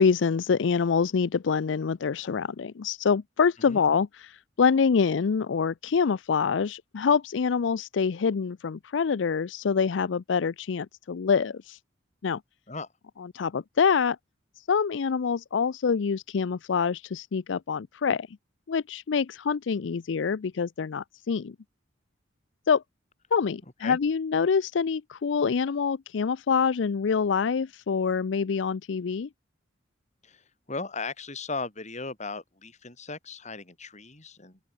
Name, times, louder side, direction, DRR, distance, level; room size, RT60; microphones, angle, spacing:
voice 1, 0.0-11.8 12.2-12.4 13.3-14.2 14.6-18.3 18.7-21.6 22.7-22.8 23.3-29.3, left 6 dB, 75° left, 0.5 m, -26 dB
voice 2, 30.2-34.6, left 3 dB, 40° left, 4.4 m, -37 dB
open air
head